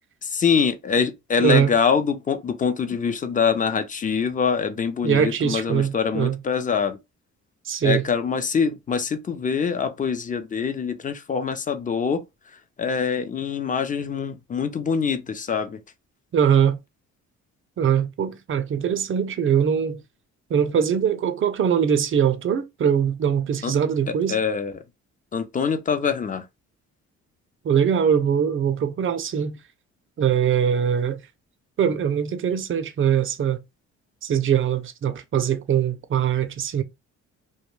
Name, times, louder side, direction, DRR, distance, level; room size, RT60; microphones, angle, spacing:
voice 1, 0.2-7.0 7.8-12.2 12.5-15.8 23.6-23.7 24.3-24.8 25.3-26.5, left 6 dB, 25° left, 0.5 m, -24 dB
voice 2, 1.4-1.7 5.0-6.4 7.7-8.1 16.3-16.8 17.8-20.0 20.5-24.4 27.6-29.6 30.2-31.2 31.8-33.6 34.2-36.8, right 8 dB, 45° right, 0.5 m, -22 dB
2.2 x 2.2 x 3.0 m
cardioid pair, 90°, 30 cm